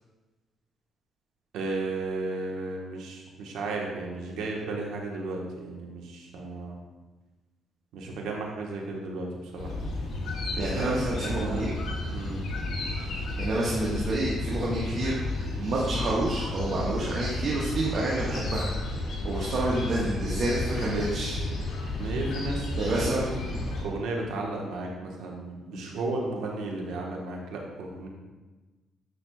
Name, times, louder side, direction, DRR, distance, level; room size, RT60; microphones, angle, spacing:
voice 1, 1.5-6.8 7.9-9.7 10.6-11.6 12.0-12.4 22.0-28.1, right 2 dB, 90° right, 0 dB, 1.2 m, -34 dB
sound 1, 9.6-23.8, left 2 dB, 70° left, 2.2 m, -32 dB
voice 2, 10.6-11.8 13.4-18.7 19.2-21.4 22.8-23.2, right 2 dB, 55° right, -5 dB, 1.3 m, -29 dB
9.5 x 6.1 x 2.3 m, 1.2 s
cardioid pair, 90°, 0 cm